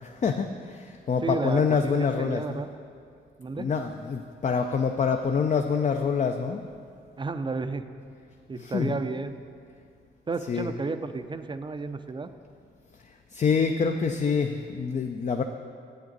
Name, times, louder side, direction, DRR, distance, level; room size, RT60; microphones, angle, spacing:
voice 1, 0.0-2.6 3.6-6.6 8.6-9.0 10.5-10.7 13.3-15.4, left 5 dB, 35° left, 5 dB, 0.4 m, -26 dB
voice 2, 1.2-2.7 3.4-3.7 7.2-7.8 8.5-9.3 10.3-12.3, right 3 dB, 25° right, 10 dB, 0.4 m, -32 dB
7.6 x 7.5 x 4.0 m, 2.3 s
supercardioid pair, 55°, 20 cm